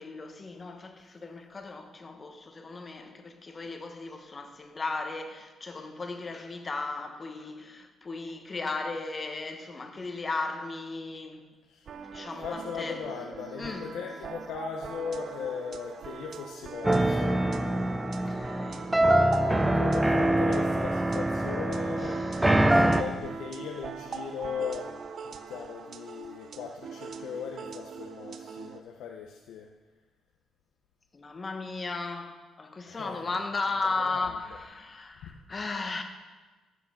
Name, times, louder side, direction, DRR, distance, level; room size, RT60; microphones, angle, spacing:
voice 1, 0.0-11.5 12.1-13.9 18.0-18.9 22.0-22.8 31.1-36.0, left 3 dB, 30° left, 1.1 m, -36 dB
sound 1, 11.9-28.8, right 6 dB, 55° right, 0.5 m, -42 dB
voice 2, 12.4-17.5 19.7-22.2 22.5-25.0 25.2-29.7 32.9-33.4 33.7-34.4, left 6 dB, 85° left, 0.7 m, -38 dB
sound 2, 16.8-23.0, right 1 dB, 10° right, 0.5 m, -24 dB
12.5 x 7.3 x 3.6 m
cardioid pair, 90°, 0 cm